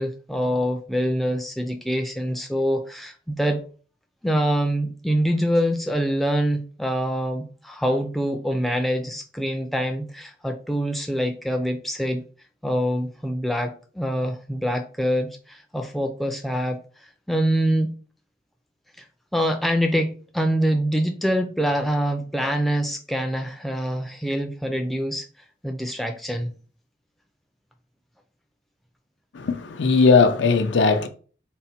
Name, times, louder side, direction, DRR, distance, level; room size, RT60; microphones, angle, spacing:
voice 1, 0.0-3.6 4.2-12.2 12.6-16.8 17.3-17.9 19.0-19.1 19.3-25.3 25.6-26.5, equal, ahead, 0.3 m, -25 dB
voice 2, 29.3-31.1, left 4 dB, 85° left, 0.5 m, -18 dB
4.0 x 2.1 x 4.1 m
head